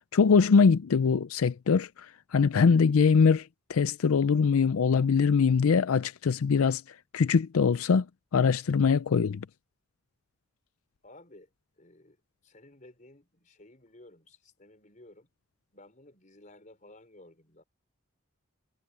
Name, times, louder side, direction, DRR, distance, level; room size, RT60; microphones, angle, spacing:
voice 1, 0.1-2.1 2.3-6.8 7.1-8.1 8.3-9.4, left 5 dB, 90° left, 0.5 m, -23 dB
voice 2, 11.0-11.5 11.8-15.3 15.7-17.6, left 1 dB, 35° left, 4.9 m, -55 dB
head